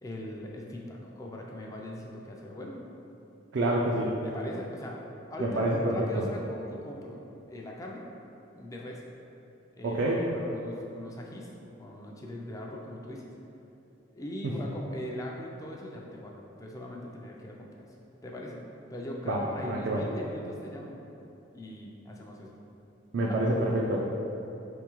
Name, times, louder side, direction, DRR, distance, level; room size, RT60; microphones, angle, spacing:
voice 1, 0.0-2.8 4.2-5.0 5.3-7.2 7.5-8.0 8.6-9.0 9.8-11.5 11.8-13.2 14.1-16.3 16.6-17.9 18.2-18.6 18.9-21.0 21.5-22.5 23.3-23.4, left 1 dB, 15° left, -1 dB, 0.3 m, -40 dB
voice 2, 3.5-4.1 5.4-6.2 9.8-10.2 19.3-19.4 19.7-20.0 23.1-24.0, right 1 dB, 65° right, -3 dB, 0.4 m, -27 dB
4.8 x 3.5 x 3.0 m, 3.0 s
head